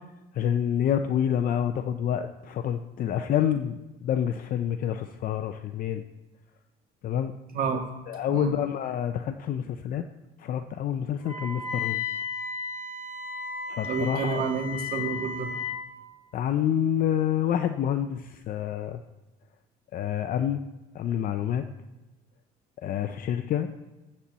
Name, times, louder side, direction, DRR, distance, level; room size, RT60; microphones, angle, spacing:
voice 1, 0.3-6.0 7.0-7.3 8.1-10.0 10.4-12.0 13.7-14.5 16.3-19.0 19.9-20.6 20.9-21.6 22.8-23.7, left 9 dB, 55° left, 8 dB, 0.6 m, -28 dB
Wind instrument woodwind instrument, 11.2-15.8, left 5 dB, 45° right, 2.8 m, -34 dB
voice 2, 13.8-15.5, right 5 dB, 60° right, 2 dB, 1.9 m, -29 dB
13.0 x 4.4 x 7.4 m, 1.1 s
cardioid pair, 110°, 17 cm